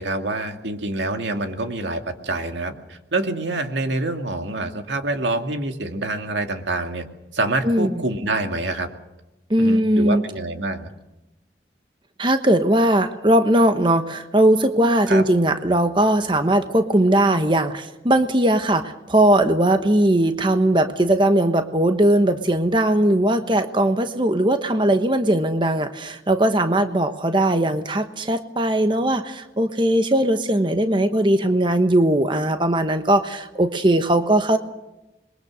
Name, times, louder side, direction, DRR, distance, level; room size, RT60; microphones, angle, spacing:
voice 1, 0.0-7.0 7.3-8.9 9.6-10.9 15.1-15.3, right 2 dB, 90° right, 5 dB, 2.3 m, -26 dB
voice 2, 7.6-8.0 9.5-10.2 12.2-34.6, right 1 dB, 25° right, 8 dB, 1.1 m, -19 dB
27.0 x 22.5 x 6.4 m, 0.97 s
head